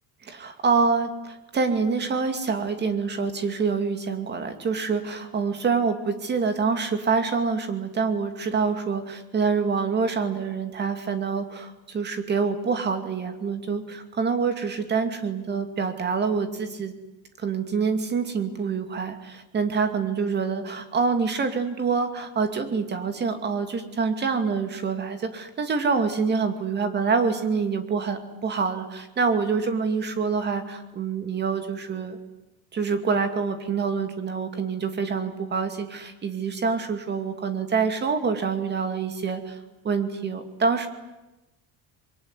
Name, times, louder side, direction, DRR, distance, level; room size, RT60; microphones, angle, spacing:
voice 1, 0.2-16.9 17.4-32.2 32.7-39.6 39.8-40.9, right 5 dB, 25° right, 8 dB, 2.5 m, -26 dB
26.5 x 23.0 x 9.8 m, 1.0 s
cardioid pair, 170°, 39 cm